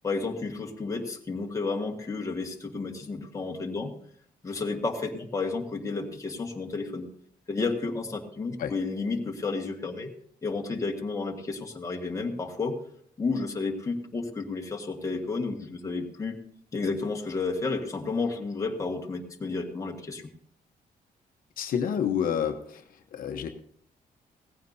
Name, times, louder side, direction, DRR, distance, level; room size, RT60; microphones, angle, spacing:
voice 1, 0.0-3.9 4.4-7.1 7.5-10.1 10.4-12.8 13.2-16.4 16.7-20.2, left 3 dB, 20° left, 1 dB, 1.6 m, -31 dB
voice 2, 21.6-22.8 23.1-23.5, left 8 dB, 70° left, 5 dB, 1.0 m, -28 dB
17.5 x 15.0 x 2.7 m, 0.63 s
cardioid pair, 145°, 15 cm